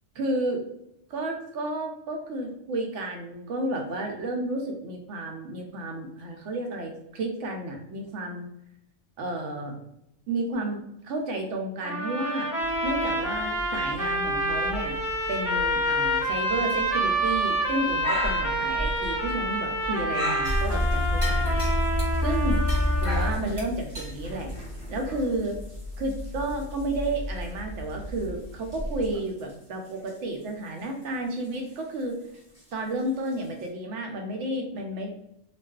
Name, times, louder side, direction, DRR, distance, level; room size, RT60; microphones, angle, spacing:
voice 1, 0.2-0.6 1.1-8.5 9.2-9.8 10.3-12.5 12.8-15.0 15.3-21.6 22.2-22.6 23.0-24.5 24.9-25.6 26.0-32.2 32.7-35.1, right 1 dB, 85° right, 2 dB, 0.9 m, -31 dB
sound 1, 11.8-23.4, right 1 dB, 10° left, 1.0 m, -28 dB
sound 2, 12.6-29.2, equal, 60° left, 0.8 m, -37 dB
sound 3, 20.4-27.0 27.4-27.5 28.0-28.2 28.7-29.1 29.4-29.5 30.1-30.2 32.5-32.6 33.2-33.3, left 1 dB, 25° right, 0.7 m, -28 dB
2.4 x 2.3 x 2.2 m, 0.81 s
omnidirectional pair, 1.2 m